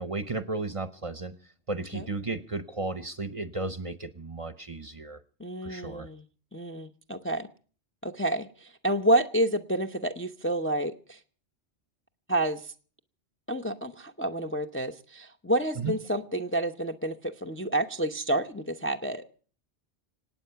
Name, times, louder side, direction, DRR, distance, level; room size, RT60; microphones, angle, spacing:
voice 1, 0.0-1.3 1.7-5.2 5.6-6.1 15.8-15.9, right 3 dB, 35° right, 13 dB, 0.8 m, -34 dB
voice 2, 5.4-6.2 6.5-7.5 8.0-11.2 12.3-12.7 13.5-19.2, right 1 dB, 15° left, 5 dB, 0.6 m, -29 dB
26.5 x 9.1 x 5.7 m, 0.43 s
omnidirectional pair, 1.1 m